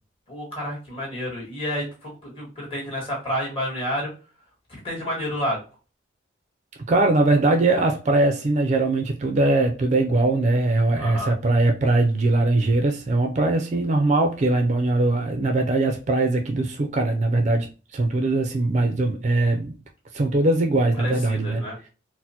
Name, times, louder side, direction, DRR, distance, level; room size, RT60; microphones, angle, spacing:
voice 1, 0.3-4.1 4.7-5.6 10.9-11.3 20.9-21.8, equal, 30° left, 1.5 m, -30 dB
voice 2, 6.9-19.7 20.1-21.6, right 2 dB, 40° right, 0.4 m, -21 dB
4.2 x 2.0 x 2.7 m
head